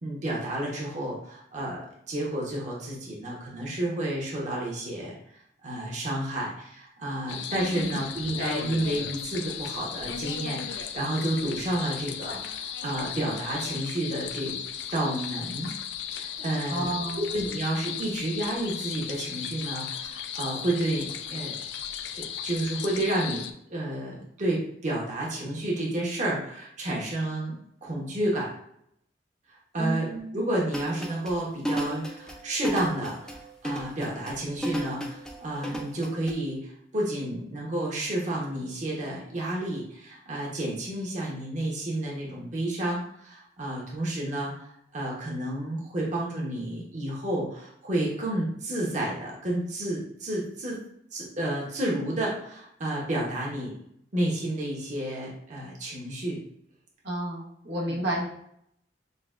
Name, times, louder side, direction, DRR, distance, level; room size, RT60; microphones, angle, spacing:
voice 1, 0.0-5.1 5.6-14.6 14.9-15.7 16.0-21.6 22.2-27.6 27.8-28.5 29.7-50.8 51.1-53.7 54.1-56.4 57.9-58.0, right 1 dB, 45° right, -3 dB, 0.9 m, -31 dB
sound 1, 7.3-23.5, left 8 dB, 80° left, 0.4 m, -36 dB
voice 2, 16.7-17.2 29.8-30.3 57.0-58.3, right 1 dB, 90° right, -2 dB, 1.0 m, -31 dB
sound 2, 30.7-36.3, equal, 5° left, 0.4 m, -33 dB
6.5 x 2.2 x 2.4 m, 0.73 s
head